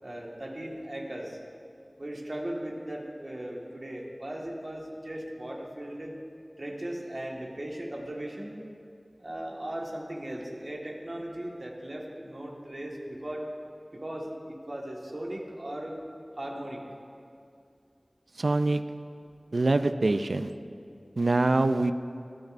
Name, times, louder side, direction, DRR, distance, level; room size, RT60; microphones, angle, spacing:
voice 1, 0.0-1.4 2.0-6.2 6.6-8.6 9.2-13.4 13.9-16.0 16.4-16.8, right 1 dB, 55° right, -2 dB, 1.6 m, -38 dB
voice 2, 18.4-18.8 19.5-20.5 21.2-21.9, right 2 dB, 85° right, 10 dB, 0.4 m, -24 dB
17.5 x 9.5 x 2.6 m, 2.5 s
wide cardioid pair, 45°, 0 cm